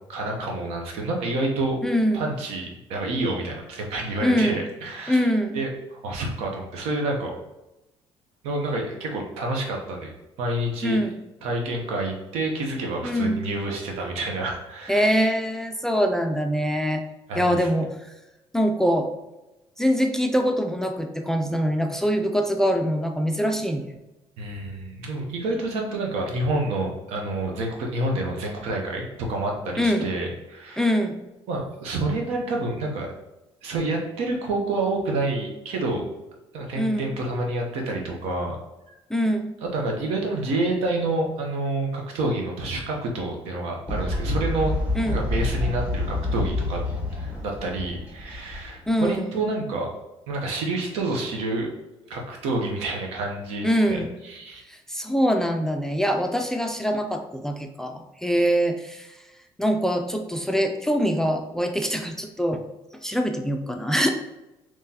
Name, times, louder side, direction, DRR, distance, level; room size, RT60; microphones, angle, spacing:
voice 1, 0.1-1.8 2.1-5.3 5.5-7.3 8.4-10.1 10.4-11.0 11.4-15.3 17.3-17.7 24.4-30.9 31.5-33.1 33.6-36.0 36.5-38.6 38.9-39.0 39.6-44.7 45.1-46.8 47.1-49.9 50.3-51.7 52.1-54.6, right 2 dB, 80° right, 1 dB, 0.8 m, -28 dB
voice 2, 1.8-2.2 4.2-4.6 5.1-5.6 10.8-11.1 13.0-13.4 14.9-17.0 17.4-17.9 18.5-19.1 19.8-23.8 29.8-30.1 30.8-31.2 36.8-37.1 39.1-39.5 44.9-45.2 48.9-49.3 53.6-54.1 54.7-59.1 59.6-62.6 63.0-64.1, equal, 5° left, 5 dB, 0.3 m, -23 dB
Fowl, 43.9-49.1, left 2 dB, 15° right, 1.3 m, -28 dB
3.7 x 3.1 x 2.8 m, 0.97 s
cardioid pair, 110°, 10 cm